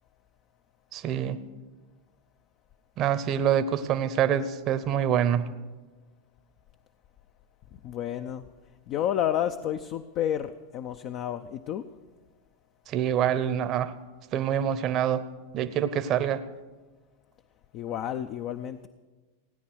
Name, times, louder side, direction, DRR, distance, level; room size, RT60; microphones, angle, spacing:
voice 1, 0.9-1.4 3.0-5.5 12.9-13.9 14.3-15.2 15.5-16.4, right 9 dB, 40° right, 12 dB, 0.8 m, -26 dB
voice 2, 7.7-8.4 8.9-11.9 17.7-18.9, left 10 dB, 45° left, 9 dB, 0.6 m, -30 dB
17.0 x 9.6 x 6.3 m, 1.3 s
hypercardioid pair, 105°, 0 cm